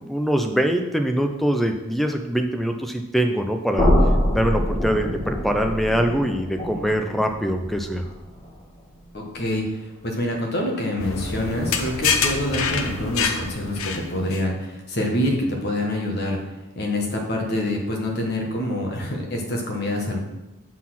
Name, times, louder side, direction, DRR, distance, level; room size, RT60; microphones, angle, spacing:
voice 1, 0.0-3.9 4.3-8.0, equal, ahead, 5 dB, 0.5 m, -23 dB
sound 1, 3.7-9.6, equal, 20° left, 1.6 m, -25 dB
voice 2, 9.1-16.4 16.7-20.2, left 1 dB, 50° left, 1 dB, 1.4 m, -26 dB
sound 2, 11.0-14.4, left 5 dB, 80° left, 0.7 m, -26 dB
7.4 x 4.1 x 5.8 m, 1.0 s
head